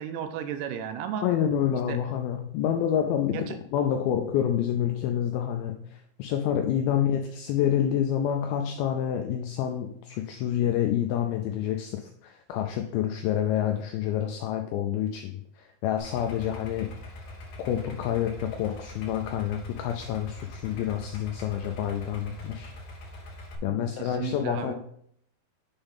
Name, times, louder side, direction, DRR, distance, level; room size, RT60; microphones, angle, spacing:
voice 1, 0.0-1.3 1.9-2.0 3.3-3.6 23.7-24.7, right 9 dB, 80° right, 7 dB, 2.5 m, -34 dB
voice 2, 1.2-16.9 17.6-22.7 23.6-24.7, left 10 dB, 85° left, 5 dB, 2.1 m, -28 dB
Idling, 16.0-23.6, left 1 dB, 65° left, 2.0 m, -43 dB
7.1 x 3.5 x 5.5 m, 0.67 s
omnidirectional pair, 4.8 m